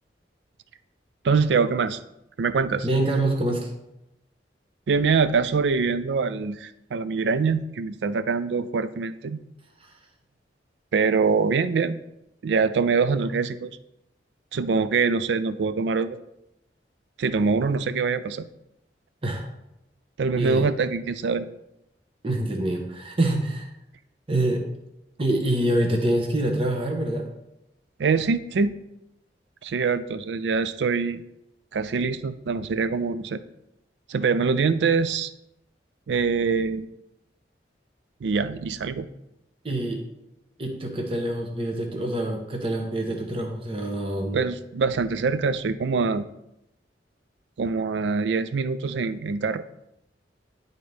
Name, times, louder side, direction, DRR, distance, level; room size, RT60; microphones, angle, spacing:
voice 1, 1.2-2.0 2.4-2.9 4.9-9.4 10.9-12.0 12.4-13.7 14.5-16.2 17.2-18.5 20.2-21.5 28.0-28.7 29.6-31.2 31.7-33.4 34.1-35.3 36.1-36.9 38.2-39.1 44.3-46.2 47.6-49.6, right 5 dB, 80° right, 13 dB, 0.4 m, -24 dB
voice 2, 2.8-3.7 19.2-19.4 20.3-20.7 22.2-23.7 24.3-24.6 25.2-27.3 39.6-40.0 40.6-44.4, right 1 dB, 30° right, 2 dB, 0.9 m, -25 dB
10.5 x 4.0 x 3.3 m, 0.85 s
head